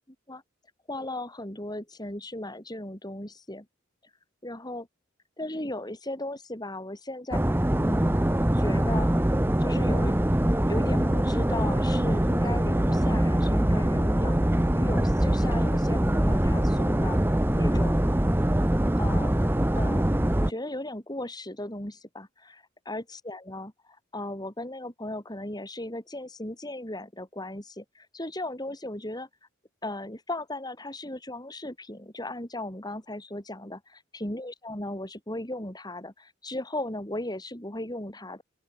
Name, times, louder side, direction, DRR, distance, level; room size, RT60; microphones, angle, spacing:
voice 1, 0.9-3.7 4.4-4.9 5.4-7.4 7.8-8.2 8.5-9.1 9.6-10.2 10.7-14.4 14.7-17.2 17.5-18.0 19.0-19.3 19.7-20.1 20.4-29.3 29.8-38.4, left 1 dB, 20° left, 6.6 m, -36 dB
sound 1, 7.3-20.5, right 1 dB, 10° right, 0.8 m, -23 dB
open air
head